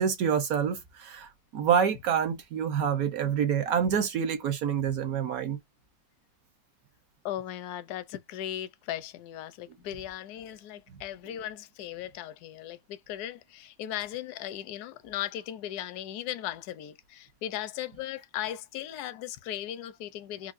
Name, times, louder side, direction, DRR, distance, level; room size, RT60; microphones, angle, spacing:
voice 1, 0.0-5.6, right 7 dB, 65° right, 0.9 m, -27 dB
voice 2, 7.2-20.5, left 12 dB, 75° left, 0.9 m, -37 dB
4.6 x 2.4 x 2.5 m
omnidirectional pair, 2.1 m